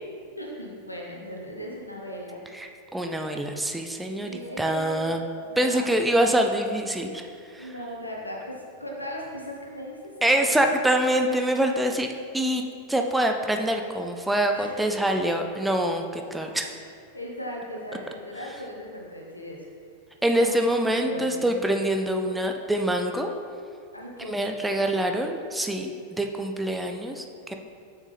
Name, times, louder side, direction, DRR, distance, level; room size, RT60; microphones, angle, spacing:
voice 1, 0.4-2.4 4.2-5.9 7.6-10.7 14.5-14.7 16.6-16.8 17.1-19.7 20.3-20.6 21.0-21.4 23.9-25.0 27.4-27.6, equal, 85° left, -2 dB, 1.2 m, -38 dB
voice 2, 2.5-5.2 5.6-7.3 7.5-7.7 10.2-12.1 12.3-12.6 12.9-16.6 20.2-23.3 24.2-27.5, right 1 dB, 5° right, 4 dB, 0.5 m, -25 dB
7.2 x 6.3 x 3.3 m, 2.3 s
figure-of-eight pair, 90°, 0 cm